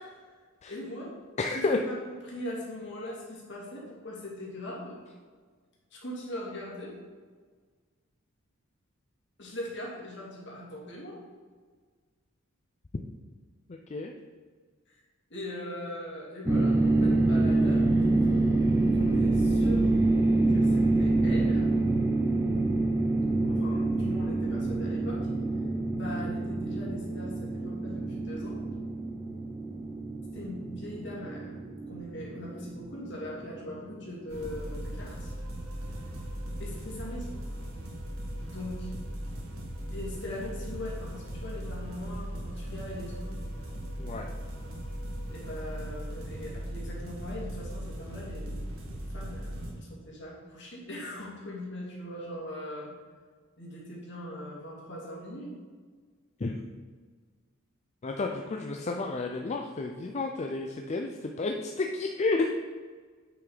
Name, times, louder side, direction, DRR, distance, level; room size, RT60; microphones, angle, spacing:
voice 1, 0.7-1.1 1.5-2.0 2.3-5.0 5.9-6.9 9.4-11.2 14.9-15.0 15.3-18.4 18.9-20.0 20.5-21.7 23.5-25.3 25.9-28.6 30.3-31.5 31.9-35.3 35.6-35.8 36.6-37.4 38.5-38.9 39.9-43.3 45.3-52.9 53.6-55.5, left 1 dB, 55° left, -4 dB, 2.6 m, -40 dB
voice 2, 1.4-1.8 13.7-14.1 23.4-23.8 44.0-44.3 56.4-56.5 58.0-62.5, left 3 dB, 30° left, 3 dB, 0.4 m, -31 dB
sound 1, 16.5-33.6, right 2 dB, 10° right, 0.7 m, -26 dB
sound 2, 34.3-49.7, equal, 75° right, 1.8 m, -38 dB
9.1 x 5.8 x 4.0 m, 1.5 s
head